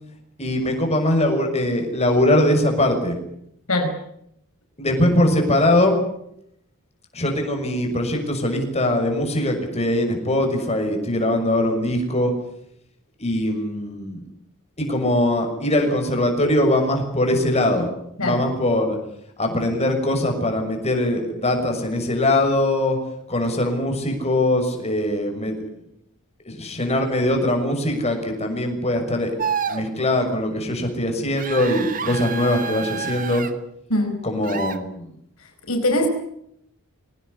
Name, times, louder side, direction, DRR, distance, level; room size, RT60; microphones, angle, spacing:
voice 1, 0.4-3.2 4.8-5.9 7.1-12.3 13.2-14.2 14.8-17.9 18.2-19.0 19.4-23.0 23.3-25.6 26.5-29.3 29.7-33.4 34.2-35.1, left 1 dB, 30° left, 3 dB, 6.4 m, -21 dB
sound 1, 29.4-29.8 31.4-33.5 34.4-34.8, right 7 dB, 40° right, 1.9 m, -28 dB
voice 2, 35.7-36.1, left 1 dB, 70° left, 5 dB, 5.0 m, -21 dB
24.0 x 18.0 x 9.9 m, 0.75 s
head